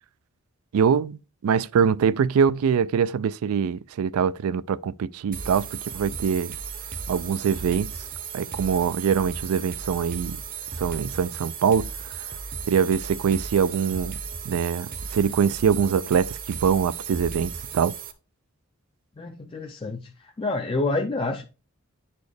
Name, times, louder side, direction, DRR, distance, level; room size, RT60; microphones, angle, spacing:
voice 1, 0.7-6.5 7.1-7.9 8.3-10.4 10.8-11.9 12.7-14.1 14.5-17.9, right 7 dB, 85° right, 0.3 m, -23 dB
sound 1, 5.3-18.1, right 6 dB, 40° right, 0.7 m, -35 dB
voice 2, 19.2-20.1 20.4-21.4, left 2 dB, 25° left, 0.4 m, -28 dB
9.4 x 4.2 x 3.3 m
head